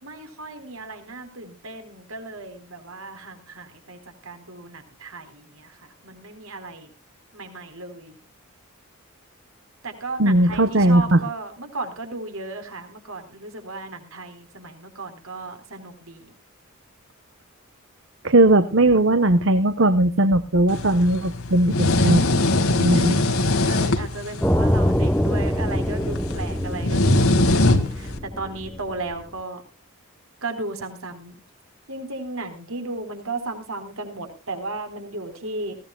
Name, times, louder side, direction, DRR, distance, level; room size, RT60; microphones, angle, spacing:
voice 1, 0.0-5.7 6.0-6.9 7.3-8.2 9.8-16.3 22.8-29.6 30.4-31.4 31.9-35.8, right 2 dB, 75° right, 6 dB, 4.1 m, -35 dB
voice 2, 10.2-11.2 18.2-22.2 22.8-23.2, right 1 dB, 55° right, 10 dB, 1.0 m, -18 dB
sound 1, 20.7-28.2, left 2 dB, 75° left, 2.1 m, -22 dB
sound 2, 24.4-29.2, equal, 5° left, 0.7 m, -24 dB
20.5 x 16.5 x 2.3 m, 0.30 s
head